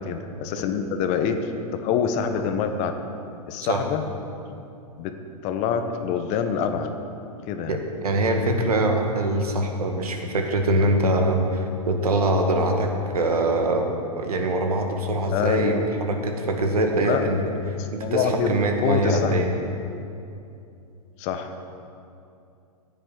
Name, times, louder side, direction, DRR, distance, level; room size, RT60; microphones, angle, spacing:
voice 1, 0.0-3.0 3.5-4.0 5.0-5.2 5.4-6.9 7.5-7.8 15.3-15.8 17.0-17.3 17.8-18.5 18.8-19.3 21.2-21.8, left 7 dB, 35° left, 7 dB, 1.1 m, -26 dB
voice 2, 7.7-17.4 17.9-19.5, right 1 dB, 75° right, 3 dB, 1.9 m, -23 dB
15.0 x 9.9 x 4.7 m, 2.6 s
hypercardioid pair, 110°, 19 cm